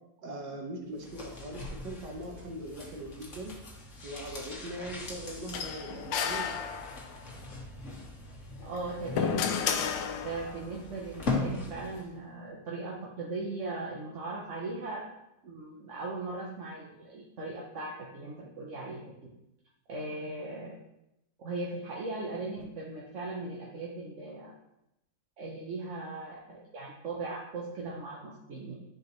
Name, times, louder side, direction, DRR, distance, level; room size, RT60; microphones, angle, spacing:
voice 1, 0.2-3.6 4.0-6.5, right 1 dB, 75° right, 1 dB, 1.7 m, -41 dB
sound 1, 1.0-12.2 12.4-12.5, left 3 dB, 45° left, 1.6 m, -40 dB
sound 2, 5.5-7.3 8.6-10.7, left 7 dB, 85° left, 1.3 m, -32 dB
voice 2, 8.6-15.0 15.4-19.1 19.9-20.8 21.4-24.5 25.4-28.8, right 3 dB, 50° right, -4 dB, 1.1 m, -38 dB
10.5 x 4.9 x 3.2 m, 0.86 s
omnidirectional pair, 1.9 m